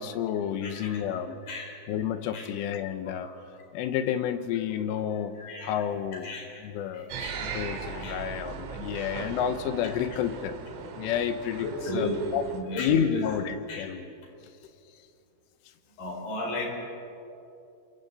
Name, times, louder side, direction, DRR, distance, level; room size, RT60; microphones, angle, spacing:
voice 1, 0.0-1.4 1.9-3.3 3.7-5.3 5.6-6.3 6.6-10.6 11.0-12.4 12.8-14.1, left 9 dB, 90° left, 9 dB, 3.6 m, -30 dB
voice 2, 0.6-1.0 1.4-1.7 2.3-2.4 3.2-3.3 5.4-5.7 6.2-6.7 6.9-7.4 8.0-8.2 11.6-12.1 12.5-13.3 13.7-13.8 16.0-16.7, left 1 dB, 50° left, -1 dB, 5.7 m, -35 dB
sound 1, 7.1-12.6, right 5 dB, 85° right, 4.3 m, -39 dB
28.0 x 25.5 x 4.1 m, 2.6 s
omnidirectional pair, 5.5 m